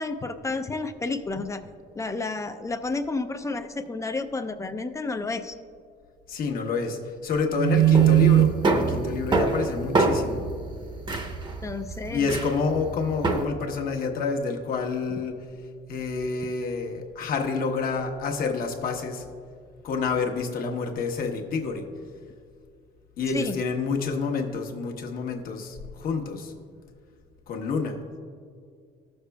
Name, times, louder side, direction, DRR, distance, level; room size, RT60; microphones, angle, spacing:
voice 1, 0.0-1.6 2.0-5.6 11.6-12.4 23.3-23.6, left 3 dB, 20° left, 8 dB, 0.4 m, -31 dB
voice 2, 6.3-10.4 12.1-15.4 15.9-19.2 19.8-21.9 23.2-26.5 27.5-28.0, left 4 dB, 60° left, 3 dB, 1.1 m, -28 dB
sound 1, 7.5-13.4, right 7 dB, 30° right, 0.8 m, -22 dB
15.0 x 6.6 x 2.3 m, 2.2 s
cardioid pair, 110°, 17 cm